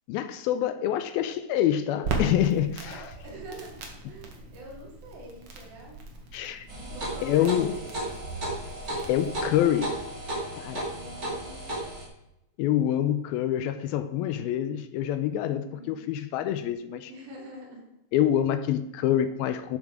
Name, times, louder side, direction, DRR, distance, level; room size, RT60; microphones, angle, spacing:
voice 1, 0.1-3.0 6.3-6.7 7.2-7.7 9.1-10.0 10.5-10.9 12.6-17.1 18.1-19.8, left 11 dB, 80° left, 11 dB, 2.4 m, -26 dB
Crackle, 2.0-9.3, right 3 dB, 50° right, 1.9 m, -38 dB
voice 2, 2.8-3.8 4.1-6.0 6.8-8.6 10.8-11.8 15.5-16.1 17.1-17.9, right 1 dB, 70° right, -4 dB, 4.9 m, -45 dB
sound 1, 6.7-12.0, right 1 dB, 25° right, 2.6 m, -34 dB
12.5 x 7.7 x 4.8 m, 0.86 s
omnidirectional pair, 4.5 m